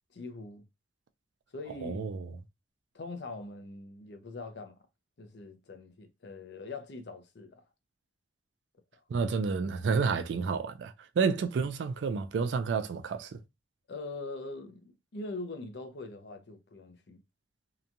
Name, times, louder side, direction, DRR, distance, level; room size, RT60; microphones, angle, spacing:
voice 1, 0.1-0.6 1.5-2.1 2.9-4.8 5.2-7.6 13.9-17.2, left 3 dB, 70° left, 0.6 m, -42 dB
voice 2, 1.8-2.2 9.1-13.4, right 5 dB, 85° right, 0.3 m, -30 dB
2.9 x 2.2 x 2.5 m
head